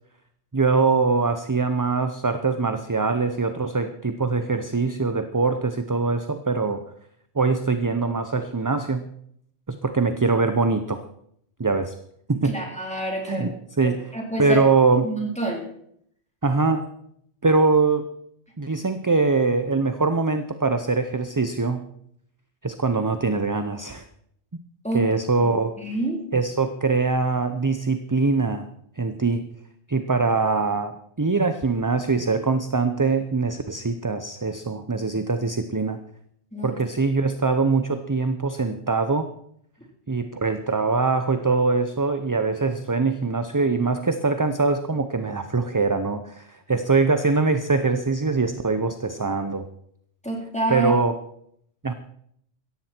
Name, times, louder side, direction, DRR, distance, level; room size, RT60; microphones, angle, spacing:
voice 1, 0.5-6.8 7.4-9.0 9.7-11.0 11.6-11.9 12.3-12.6 13.3-14.1 14.4-15.1 16.4-16.8 17.4-18.1 18.6-21.8 22.6-24.0 24.9-25.7 26.3-28.7 29.0-29.5 29.9-36.0 36.6-39.3 40.1-49.7 50.7-51.1 51.8-51.9, right 4 dB, 20° right, 9 dB, 0.6 m, -23 dB
voice 2, 12.4-13.5 13.8-14.6 15.0-15.7 24.8-25.1 25.4-25.5 25.8-26.2 36.5-36.7 50.2-50.9, right 2 dB, 5° left, -1 dB, 3.7 m, -28 dB
16.5 x 14.0 x 4.4 m, 0.70 s
omnidirectional pair, 1.1 m